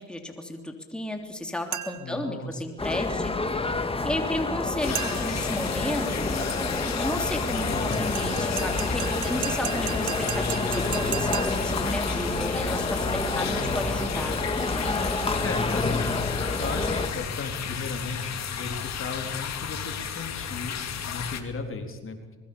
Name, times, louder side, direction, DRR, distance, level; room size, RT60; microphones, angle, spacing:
voice 1, 0.0-6.3 7.0-15.1, left 1 dB, 5° left, 3 dB, 3.1 m, -33 dB
sound 1, 1.7-2.2 4.9-5.5 7.9-11.8, right 12 dB, 80° right, 2.1 m, -35 dB
voice 2, 2.0-2.6 3.0-3.1 3.4-4.4 7.7-8.1 13.4-14.0 15.4-16.1 16.6-22.4, left 4 dB, 45° left, 4 dB, 3.8 m, -36 dB
sound 2, 2.8-17.1, left 3 dB, 20° left, 2.2 m, -28 dB
sound 3, 4.8-21.4, left 8 dB, 60° left, 2.6 m, -34 dB
25.0 x 21.5 x 7.1 m, 1.2 s
cardioid pair, 90°, 30 cm